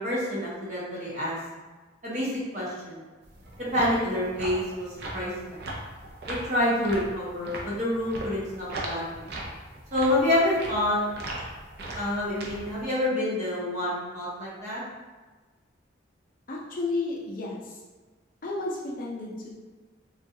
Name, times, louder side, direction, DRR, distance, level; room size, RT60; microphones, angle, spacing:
voice 1, 0.0-1.4 2.0-3.1 3.6-5.6 6.3-9.3 9.9-11.0 11.9-14.8, left 1 dB, 40° right, -7 dB, 0.9 m, -28 dB
sound 1, 3.2-12.8, right 1 dB, 55° right, 0.5 m, -39 dB
voice 2, 16.5-17.8 18.4-19.5, left 3 dB, 45° left, -4 dB, 0.5 m, -32 dB
3.6 x 2.3 x 2.6 m, 1.3 s
head